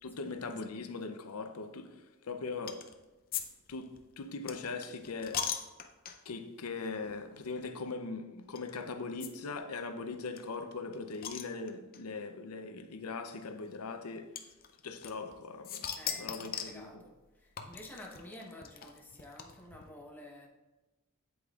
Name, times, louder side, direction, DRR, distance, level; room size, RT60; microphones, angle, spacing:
voice 1, 0.0-2.9 3.7-5.5 6.2-14.3 14.8-15.9 16.2-17.0, left 4 dB, 85° left, 0.6 m, -40 dB
sound 1, 2.7-2.9 3.3-6.4 7.0-7.2 7.4-7.5 8.5-8.7 9.2-9.3 9.6-9.7 9.8-9.9 10.4-12.0 12.9-13.0 14.3-15.3 15.6-16.8 17.6-19.8, left 8 dB, 45° left, 0.5 m, -39 dB
voice 2, 16.0-20.5, left 1 dB, 10° left, 0.9 m, -51 dB
8.3 x 7.8 x 2.4 m
head